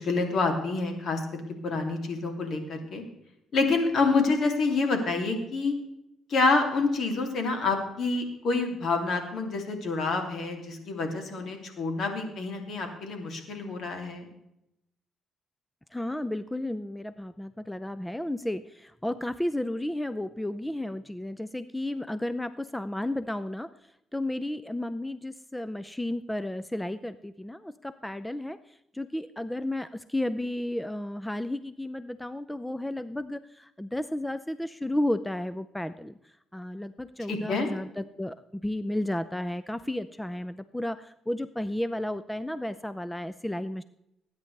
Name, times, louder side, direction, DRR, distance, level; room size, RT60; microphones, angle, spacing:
voice 1, 0.0-3.0 3.5-5.7 6.3-14.3 37.3-37.7, left 3 dB, 60° left, 4 dB, 2.6 m, -27 dB
voice 2, 15.9-23.7 24.1-28.6 28.9-36.1 36.5-43.8, left 1 dB, 5° left, 13 dB, 0.5 m, -33 dB
20.0 x 9.6 x 3.3 m, 0.82 s
cardioid pair, 90°, 0 cm